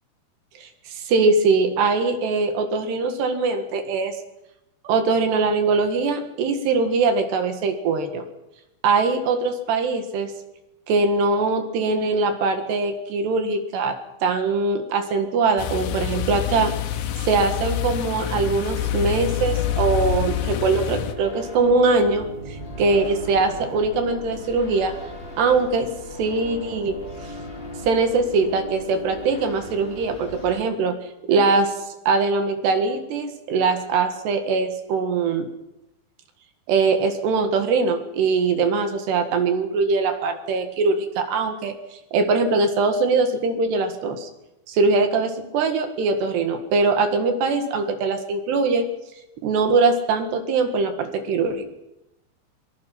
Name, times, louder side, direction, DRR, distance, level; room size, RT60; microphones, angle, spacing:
voice 1, 0.6-4.1 4.9-8.2 8.8-10.3 10.9-14.0 14.2-16.7 17.3-22.3 22.8-24.9 25.4-25.9 26.2-27.0 27.8-31.0 31.3-31.7 32.1-35.5 36.7-41.7 42.1-44.3 44.7-48.9 49.4-51.7, right 4 dB, 70° right, 7 dB, 3.6 m, -22 dB
sound 1, 15.6-21.2, left 11 dB, 85° left, 3.7 m, -26 dB
sound 2, 18.8-30.6, left 1 dB, 10° left, 4.3 m, -37 dB
24.0 x 23.0 x 5.9 m, 0.91 s
omnidirectional pair, 5.4 m